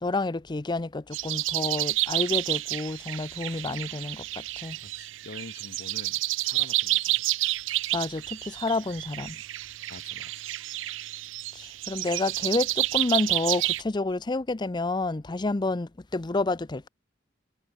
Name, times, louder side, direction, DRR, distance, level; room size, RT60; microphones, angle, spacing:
voice 1, 0.0-4.8 7.9-9.4 11.5-16.9, left 2 dB, 25° left, 0.6 m, -29 dB
sound 1, 1.1-13.8, right 17 dB, 80° right, 0.5 m, -30 dB
voice 2, 4.8-7.4 9.1-9.3 9.9-10.5, left 3 dB, 60° left, 0.8 m, -47 dB
head